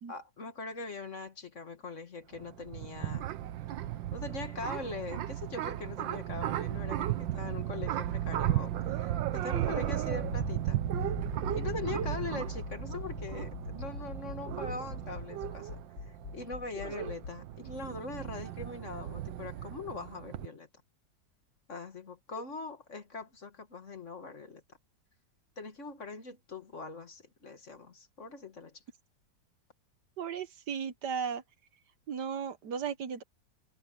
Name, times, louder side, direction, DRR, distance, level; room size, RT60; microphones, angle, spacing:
voice 1, 0.1-3.3 4.1-10.8 11.5-20.7 21.7-24.6 25.6-28.8, left 4 dB, 40° left, 1.9 m, -42 dB
sound 1, 2.3-20.5, right 12 dB, 90° right, 1.6 m, -35 dB
Accelerating revving vroom, 10.0-17.3, left 4 dB, 80° left, 2.3 m, -42 dB
voice 2, 30.2-31.4 32.1-33.2, right 7 dB, 65° right, 1.5 m, -35 dB
omnidirectional pair, 2.0 m